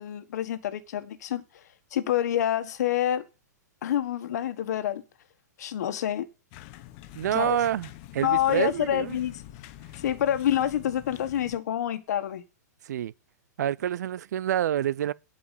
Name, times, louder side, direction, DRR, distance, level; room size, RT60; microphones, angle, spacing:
voice 1, 0.0-1.4 1.9-3.3 3.8-5.0 5.6-6.3 7.3-7.6 8.2-9.4 10.0-12.4, left 11 dB, 65° left, 1.5 m, -27 dB
sound 1, 6.5-11.6, left 14 dB, 45° left, 1.0 m, -46 dB
voice 2, 7.1-9.2 12.9-13.1 13.6-15.1, right 11 dB, 70° right, 0.5 m, -27 dB
11.5 x 5.0 x 8.3 m
hypercardioid pair, 135°, 10 cm